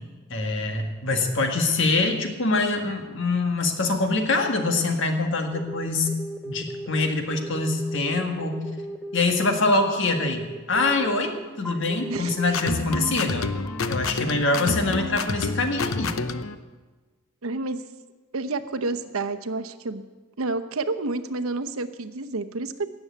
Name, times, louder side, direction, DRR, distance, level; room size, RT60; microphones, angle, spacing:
voice 1, 0.3-6.1 6.5-8.6 9.1-13.5 13.9-16.2, left 3 dB, 60° left, 4 dB, 1.8 m, -24 dB
sound 1, 5.5-13.9 14.4-14.9, right 1 dB, 5° left, 0.7 m, -37 dB
sound 2, 12.5-16.5, left 3 dB, 85° left, 0.7 m, -29 dB
voice 2, 17.4-17.8 18.3-20.0 20.4-22.9, right 3 dB, 90° right, 9 dB, 0.8 m, -29 dB
17.5 x 7.1 x 8.4 m, 1.3 s
head